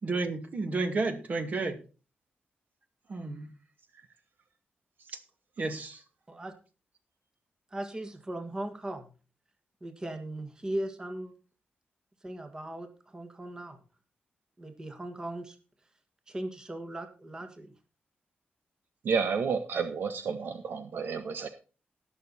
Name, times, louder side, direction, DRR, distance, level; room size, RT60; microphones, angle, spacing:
voice 1, 0.0-1.8 3.1-3.5 5.6-6.0, right 3 dB, 40° right, 6 dB, 2.2 m, -31 dB
voice 2, 7.7-9.1 9.8-11.3 12.2-13.8 14.6-15.6 16.3-17.7, right 1 dB, 20° right, 6 dB, 1.7 m, -38 dB
voice 3, 19.0-21.5, right 5 dB, 65° right, 8 dB, 1.1 m, -30 dB
18.0 x 6.7 x 4.2 m, 0.35 s
wide cardioid pair, 150°, 4 cm